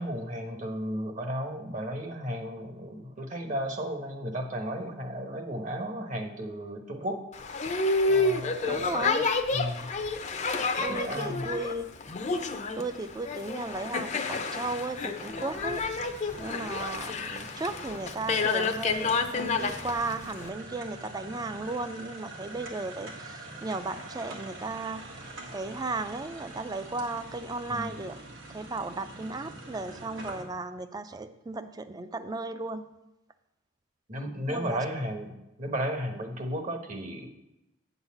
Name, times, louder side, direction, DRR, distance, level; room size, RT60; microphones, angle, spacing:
voice 1, 0.0-7.2 8.0-9.0 9.5-9.9 10.8-11.5 27.7-27.9 34.1-37.3, equal, 45° right, 5 dB, 1.1 m, -34 dB
Boat Water vehicle, 7.3-20.5, left 3 dB, 35° left, 0.6 m, -30 dB
voice 2, 8.7-9.3 10.8-11.9 12.8-15.8 16.4-28.2 28.5-32.8 34.5-34.8, right 3 dB, 20° right, 10 dB, 0.4 m, -35 dB
sound 1, 12.7-30.4, right 2 dB, 80° right, 1.8 m, -45 dB
8.6 x 4.1 x 7.1 m, 0.91 s
head